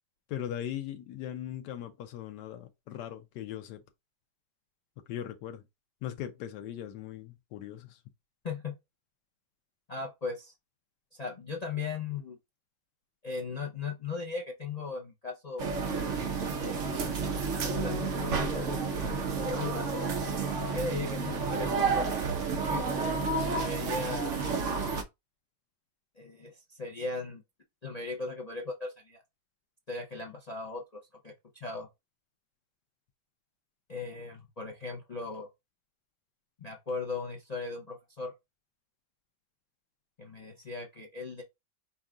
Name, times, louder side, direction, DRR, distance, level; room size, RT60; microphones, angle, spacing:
voice 1, 0.3-3.8 5.1-5.6 6.0-8.0, left 11 dB, 80° left, 1.3 m, -39 dB
voice 2, 9.9-10.5 11.1-12.4 13.2-15.7 16.6-17.2 17.5-18.8 19.3-19.9 20.5-22.9 23.5-24.4 26.2-27.4 27.8-29.2 29.9-31.9 33.9-35.5 36.6-38.3 40.2-41.4, left 4 dB, 50° left, 0.4 m, -38 dB
sound 1, 15.6-25.0, right 4 dB, 55° right, 1.0 m, -30 dB
5.4 x 2.3 x 3.7 m
omnidirectional pair, 1.8 m